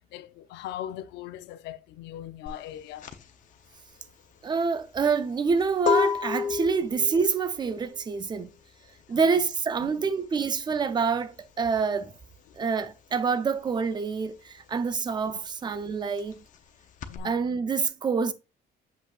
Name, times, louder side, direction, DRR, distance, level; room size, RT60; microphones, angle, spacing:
voice 1, 0.1-3.1 9.1-9.4 9.8-10.0 17.0-17.4, left 12 dB, 85° left, 0.6 m, -40 dB
sound 1, 2.5-12.7 13.0-17.2, left 7 dB, 45° left, 0.8 m, -32 dB
voice 2, 4.4-8.5 9.1-12.1 12.6-16.4 17.2-18.3, right 5 dB, 25° right, 0.6 m, -27 dB
7.4 x 5.6 x 2.5 m
cardioid pair, 145°, 18 cm